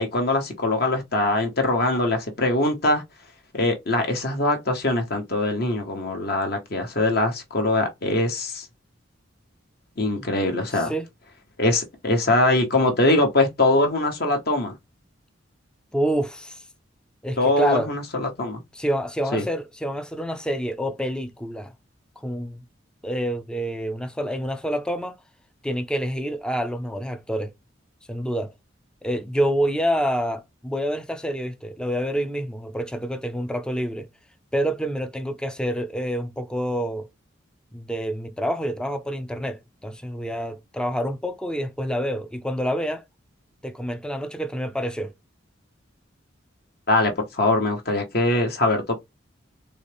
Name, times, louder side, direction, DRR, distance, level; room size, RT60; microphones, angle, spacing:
voice 1, 0.0-3.0 3.5-8.7 10.0-10.9 11.6-14.7 17.4-18.6 19.3-19.4 46.9-49.0, left 2 dB, 50° left, 1.0 m, -22 dB
voice 2, 10.7-11.1 15.9-16.6 17.2-17.9 18.7-21.7 22.2-22.6 23.0-25.2 25.6-27.5 28.1-28.5 29.0-34.1 34.5-37.1 37.7-43.0 43.6-45.1, equal, 5° left, 0.4 m, -27 dB
4.1 x 3.3 x 3.4 m
head